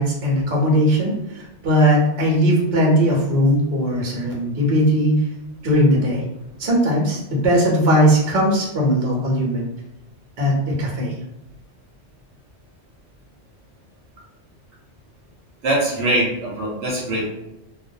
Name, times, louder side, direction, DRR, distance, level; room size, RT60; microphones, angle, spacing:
voice 1, 0.0-5.1 5.6-6.2 6.6-9.6 10.4-11.1, equal, 60° right, -2 dB, 0.9 m, -19 dB
voice 2, 15.6-17.3, right 1 dB, 80° right, -3 dB, 1.0 m, -22 dB
2.3 x 2.2 x 2.6 m, 0.89 s
omnidirectional pair, 1.2 m